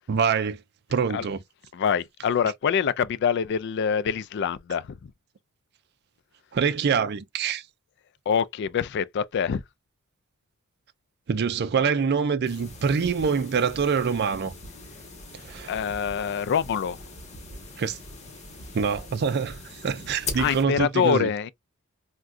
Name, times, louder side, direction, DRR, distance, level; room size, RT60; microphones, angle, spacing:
voice 1, 0.1-0.6 0.9-1.4 6.5-7.6 11.3-14.5 15.3-15.7 17.8-18.0 18.7-21.3, right 6 dB, 50° right, 0.4 m, -25 dB
voice 2, 1.7-5.1 8.3-9.6 15.7-17.0 20.4-21.5, left 7 dB, 55° left, 0.3 m, -25 dB
sound 1, 12.4-20.6, left 2 dB, 35° left, 1.1 m, -41 dB
3.6 x 2.2 x 2.4 m
head